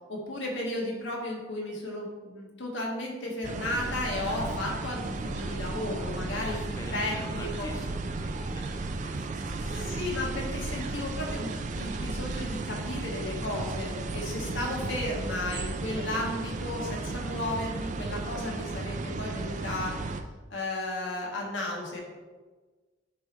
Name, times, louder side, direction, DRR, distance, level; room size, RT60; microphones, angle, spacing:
voice 1, 0.1-6.6 6.9-7.7 9.6-20.0 20.5-22.0, left 1 dB, 75° left, -2 dB, 1.7 m, -34 dB
sound 1, 3.4-20.2, right 3 dB, 40° right, 0.4 m, -35 dB
sound 2, 3.7-12.4, equal, 70° right, 1.7 m, -42 dB
voice 2, 6.4-9.5, left 1 dB, 15° left, 1 dB, 0.5 m, -45 dB
9.6 x 3.3 x 4.2 m, 1.3 s
head